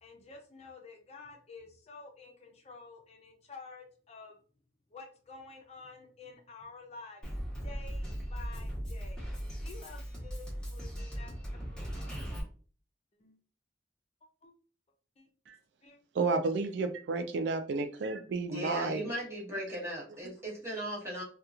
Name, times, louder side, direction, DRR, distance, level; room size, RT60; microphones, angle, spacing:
voice 1, 0.0-4.4 4.9-7.2 7.6-9.3 9.6-12.1 13.2-13.4 14.4-14.5 15.2-15.3 15.8-16.0, left 4 dB, 35° left, 3 dB, 0.5 m, -50 dB
Drum kit, 7.2-12.4, equal, 5° left, 0.9 m, -38 dB
voice 2, 16.1-19.1, right 3 dB, 80° right, 9 dB, 0.3 m, -31 dB
voice 3, 18.5-21.2, right 1 dB, 15° right, -6 dB, 1.1 m, -37 dB
2.8 x 2.2 x 2.4 m, 0.41 s
head